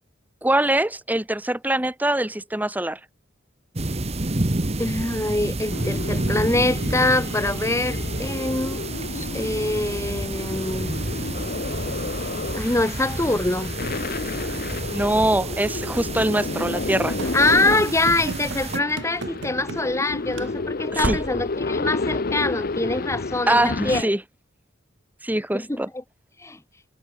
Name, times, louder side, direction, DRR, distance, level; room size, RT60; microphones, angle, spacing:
voice 1, 0.4-3.0 14.9-17.2 20.9-21.2 23.5-24.2 25.2-25.9, right 1 dB, 10° right, 1.6 m, -23 dB
sound 1, 3.8-18.8, right 2 dB, 35° right, 1.2 m, -30 dB
voice 2, 4.8-8.8 9.1-10.9 12.5-13.7 17.3-24.1 25.5-26.0 26.4-26.6, left 2 dB, 15° left, 1.1 m, -24 dB
sound 2, 5.7-24.0, left 3 dB, 50° left, 0.8 m, -31 dB
Run / Slam, 17.2-20.1 20.3-20.5 21.0-21.5, right 2 dB, 70° right, 1.5 m, -32 dB
head